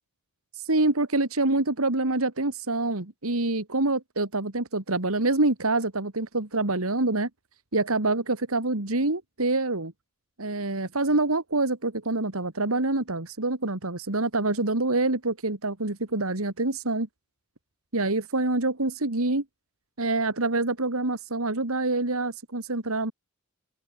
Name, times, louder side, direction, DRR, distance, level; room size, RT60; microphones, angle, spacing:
voice 1, 0.5-7.3 7.7-9.9 10.4-17.1 17.9-19.4 20.0-23.1, right 2 dB, 80° right, 2.5 m, -26 dB
open air
head